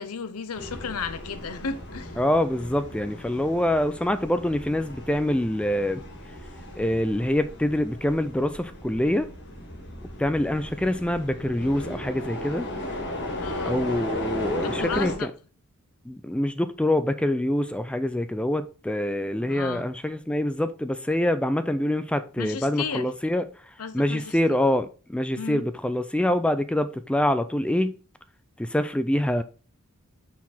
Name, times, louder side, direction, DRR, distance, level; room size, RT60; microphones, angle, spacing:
voice 1, 0.0-2.2 13.3-13.8 14.6-15.3 19.4-19.9 22.4-23.1 23.8-24.6 25.4-25.6, left 5 dB, 80° left, 0.7 m, -34 dB
sound 1, 0.5-15.1, left 1 dB, 55° left, 1.9 m, -36 dB
voice 2, 2.2-6.0 6.8-9.3 10.2-12.7 13.6-15.1 16.1-23.4 23.9-28.0 28.6-29.4, left 1 dB, 5° left, 0.4 m, -25 dB
5.8 x 4.7 x 4.1 m
head